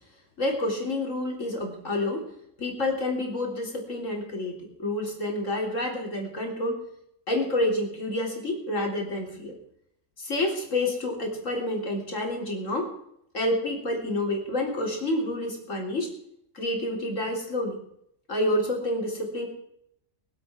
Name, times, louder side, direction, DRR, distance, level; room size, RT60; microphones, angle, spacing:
voice 1, 0.4-2.2 2.6-6.8 7.3-9.5 10.2-12.9 13.3-16.1 16.5-17.8 18.3-19.5, left 1 dB, 70° left, 0 dB, 3.8 m, -28 dB
23.0 x 8.1 x 6.0 m, 0.74 s
omnidirectional pair, 1.4 m